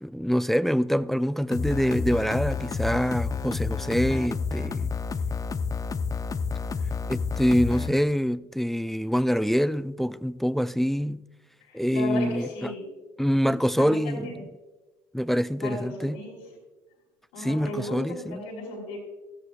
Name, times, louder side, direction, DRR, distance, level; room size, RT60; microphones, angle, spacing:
voice 1, 0.0-4.9 7.1-11.2 11.7-12.7 13.2-14.4 15.1-16.2 17.4-18.4, equal, ahead, 0.3 m, -25 dB
sound 1, 1.5-7.9, left 5 dB, 30° left, 0.8 m, -30 dB
voice 2, 11.7-12.8 13.8-14.4 15.6-16.4 17.3-19.0, left 2 dB, 80° left, 4.5 m, -35 dB
16.5 x 14.0 x 2.4 m
hypercardioid pair, 60°, 12 cm